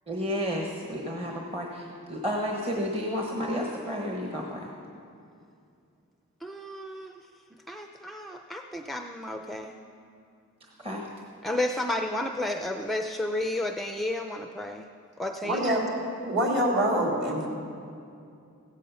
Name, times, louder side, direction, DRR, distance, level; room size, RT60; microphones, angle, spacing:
voice 1, 0.1-4.7 10.8-11.1, equal, 25° right, -1 dB, 1.2 m, -31 dB
voice 2, 6.4-7.1 7.7-9.7 11.4-14.9 15.2-15.7, left 1 dB, ahead, 4 dB, 0.4 m, -32 dB
voice 3, 15.4-15.8 16.2-17.5, right 1 dB, 50° right, -2 dB, 3.3 m, -25 dB
16.0 x 14.0 x 5.6 m, 2.5 s
head